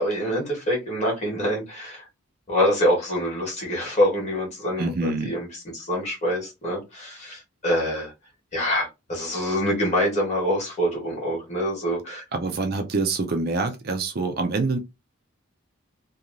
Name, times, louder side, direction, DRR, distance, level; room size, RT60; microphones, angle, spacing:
voice 1, 0.0-2.1 2.5-8.1 8.5-12.2, equal, 30° left, 1.3 m, -25 dB
voice 2, 4.8-5.3 12.3-14.8, right 3 dB, 45° right, 0.4 m, -26 dB
2.9 x 2.3 x 2.5 m
head